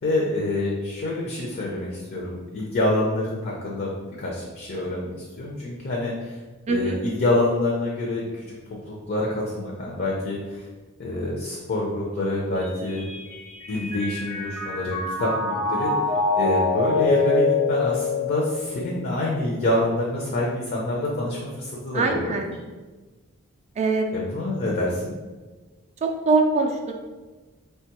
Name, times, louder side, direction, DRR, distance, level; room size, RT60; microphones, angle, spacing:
voice 1, 0.0-3.9 4.2-6.4 6.7-8.4 8.9-10.7 11.0-13.0 13.7-22.3 24.1-25.1, left 1 dB, 45° left, -3 dB, 0.5 m, -26 dB
voice 2, 6.7-7.0 21.9-22.5 23.8-24.3 26.0-26.9, right 3 dB, 30° right, 3 dB, 0.3 m, -23 dB
Mallet percussion, 12.6-19.0, left 3 dB, 90° left, 1.0 m, -25 dB
3.2 x 2.2 x 2.9 m, 1.3 s
head